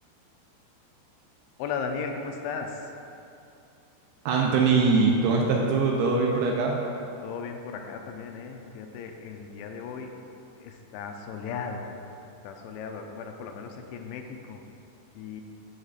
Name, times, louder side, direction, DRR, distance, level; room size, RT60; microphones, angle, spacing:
voice 1, 1.6-2.9 7.2-10.1 10.6-11.9 12.4-14.6 15.1-15.4, left 5 dB, 90° left, 4 dB, 2.9 m, -36 dB
voice 2, 4.3-6.8, right 4 dB, 85° right, -1 dB, 2.5 m, -22 dB
14.5 x 5.0 x 2.4 m, 2.7 s
omnidirectional pair, 5.2 m